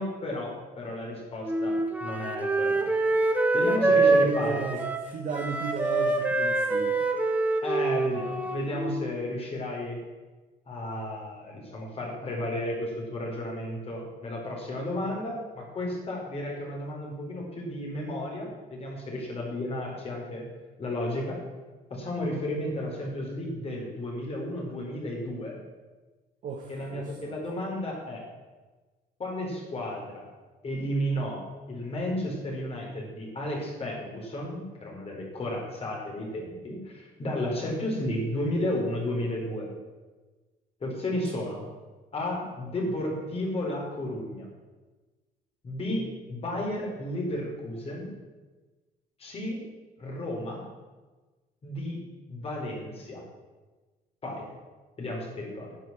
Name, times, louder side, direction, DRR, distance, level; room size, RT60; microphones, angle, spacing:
voice 1, 0.0-2.9 3.2-4.8 7.6-10.0 10.7-20.4 20.8-21.4 21.9-25.6 26.7-28.2 29.2-30.3 30.6-31.4 31.7-39.7 40.8-41.7 42.1-44.5 45.6-48.1 49.2-49.7 50.0-50.6 51.6-52.0 52.3-53.2 54.2-54.5 55.0-55.7, left 1 dB, 35° left, -1 dB, 4.7 m, -33 dB
Wind instrument woodwind instrument, 1.4-9.2, right 2 dB, 10° right, 1.5 m, -25 dB
voice 2, 3.9-4.8 5.1-7.1 26.4-27.3, right 5 dB, 50° right, 2 dB, 1.4 m, -34 dB
10.5 x 8.2 x 7.5 m, 1.2 s
cardioid pair, 110°, 17 cm